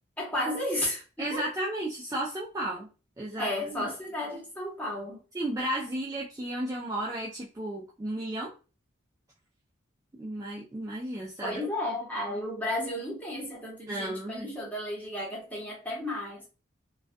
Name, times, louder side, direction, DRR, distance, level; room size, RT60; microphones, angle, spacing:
voice 1, 0.2-1.5 3.4-5.2 11.4-16.5, left 1 dB, 10° left, 0.8 m, -33 dB
voice 2, 1.2-2.9 3.2-3.9 5.3-8.5 10.2-11.6 13.9-14.5, right 1 dB, 15° right, 0.3 m, -33 dB
2.3 x 2.2 x 2.5 m
head